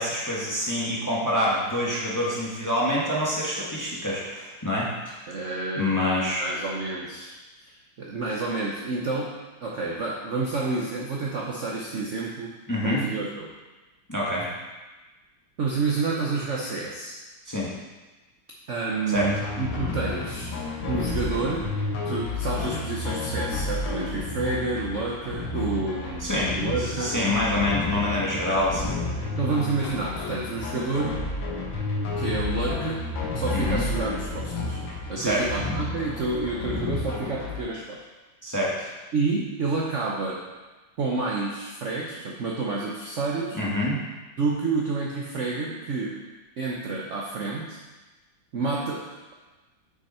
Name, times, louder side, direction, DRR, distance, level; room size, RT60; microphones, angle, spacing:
voice 1, 0.0-5.2 5.8-6.4 12.7-13.0 14.1-14.5 17.5-17.7 19.1-19.3 26.2-28.8 33.5-33.8 35.2-35.4 38.4-38.9 43.5-44.0, left 1 dB, 10° left, -6 dB, 0.9 m, -26 dB
voice 2, 5.3-7.4 7.6-12.5 12.8-13.5 15.6-17.2 18.7-20.5 20.9-21.7 22.0-27.2 28.4-28.6 29.4-31.2 32.2-33.0 33.3-34.8 35.1-38.0 39.1-40.4 41.0-43.6 44.4-46.2 46.6-47.8 48.5-49.3, right 3 dB, 75° right, -3 dB, 0.6 m, -29 dB
sound 1, 19.1-37.6, left 3 dB, 65° left, 1.9 m, -31 dB
6.4 x 6.3 x 4.3 m, 1.2 s
omnidirectional pair, 2.3 m